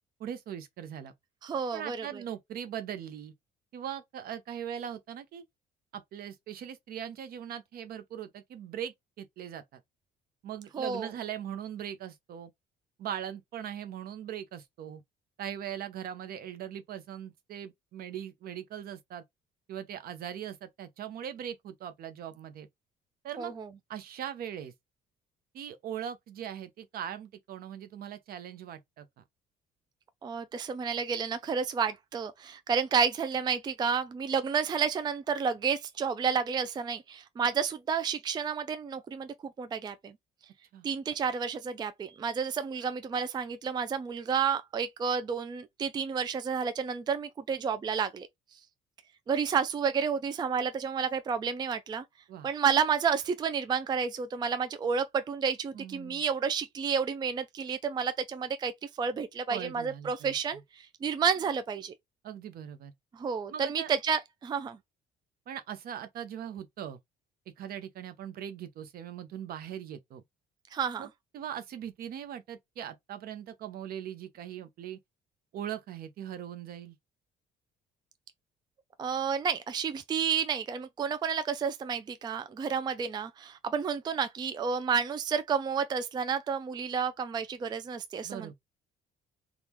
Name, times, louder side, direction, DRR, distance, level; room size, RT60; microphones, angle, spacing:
voice 1, 0.2-1.1 1.7-3.3 3.7-5.4 5.9-9.8 10.4-12.5 13.0-15.0 15.4-19.2 19.7-22.7 23.2-23.5 23.9-24.7 25.5-29.2 40.7-40.9 52.3-52.5 55.7-56.2 59.5-60.3 62.2-62.9 63.5-63.9 65.5-67.0 67.6-70.2 71.0-71.1 71.3-75.0 75.5-77.0 88.2-88.5, right 9 dB, 60° right, 0.8 m, -40 dB
voice 2, 1.4-2.2 10.7-11.1 23.4-23.7 30.2-40.1 40.8-48.3 49.3-52.0 52.4-61.9 63.1-64.8 70.7-71.1 79.0-88.5, right 6 dB, 25° right, 0.4 m, -30 dB
3.6 x 2.4 x 2.9 m
cardioid pair, 110°, 17 cm